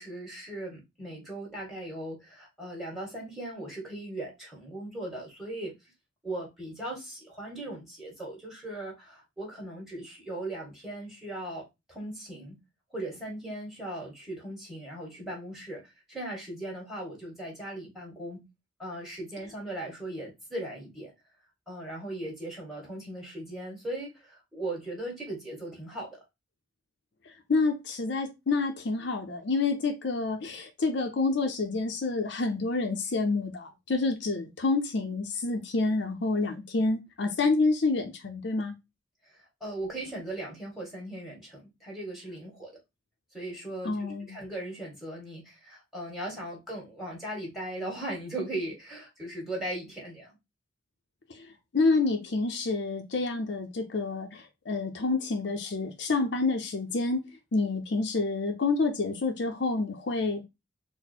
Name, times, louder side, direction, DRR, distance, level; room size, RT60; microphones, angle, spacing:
voice 1, 0.0-5.7 6.2-12.6 12.9-18.5 18.8-21.1 21.7-26.2 39.4-42.7 43.3-50.4, right 1 dB, ahead, 1.6 m, -38 dB
voice 2, 27.5-38.7 43.8-44.4 51.3-51.5 51.7-57.2 57.5-60.4, left 3 dB, 60° left, 0.5 m, -28 dB
4.1 x 2.1 x 4.2 m
head